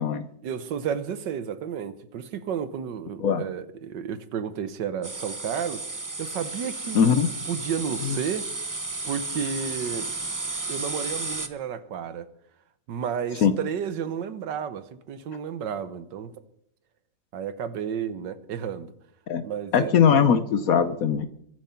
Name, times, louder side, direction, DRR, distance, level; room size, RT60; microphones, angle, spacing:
voice 1, 0.4-5.8 6.2-7.0 7.5-8.5 9.0-10.1 10.7-12.3 12.9-16.4 17.3-18.9 19.4-19.9, right 8 dB, 75° right, 1.6 m, -32 dB
sound 1, 5.0-11.5, right 2 dB, 30° right, 0.3 m, -33 dB
voice 2, 6.9-7.3 8.0-8.2 13.4-13.5 19.3-19.4 19.7-21.3, left 7 dB, 60° left, 1.0 m, -20 dB
23.0 x 7.6 x 5.7 m
omnidirectional pair, 1.9 m